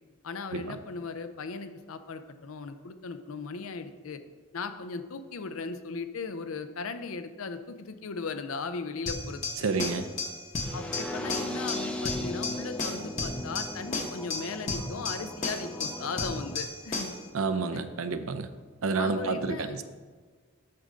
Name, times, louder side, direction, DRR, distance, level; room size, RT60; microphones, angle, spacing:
voice 1, 0.2-4.2 4.5-9.7 10.7-17.1 17.7-17.8 18.9-19.8, left 4 dB, 90° left, 9 dB, 0.6 m, -37 dB
sound 1, 9.1-17.3, left 3 dB, 35° left, 0.9 m, -34 dB
voice 2, 9.6-10.1 17.3-18.5 18.8-19.8, right 4 dB, 85° right, 10 dB, 0.6 m, -29 dB
sound 2, 10.6-16.5, left 1 dB, 5° left, 0.4 m, -38 dB
8.2 x 3.8 x 6.5 m, 1.5 s
head